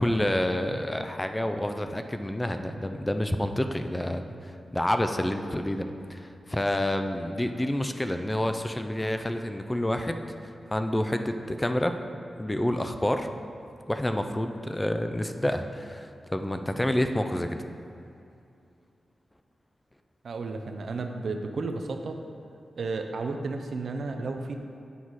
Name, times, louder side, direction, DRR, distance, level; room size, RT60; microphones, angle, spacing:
voice 1, 0.0-12.0 12.4-13.3 13.9-17.6, left 1 dB, 15° left, 7 dB, 0.4 m, -28 dB
voice 2, 20.2-22.2 22.8-24.6, right 3 dB, 70° right, 5 dB, 0.5 m, -32 dB
8.3 x 4.1 x 4.6 m, 2.5 s
cardioid pair, 80°, 0 cm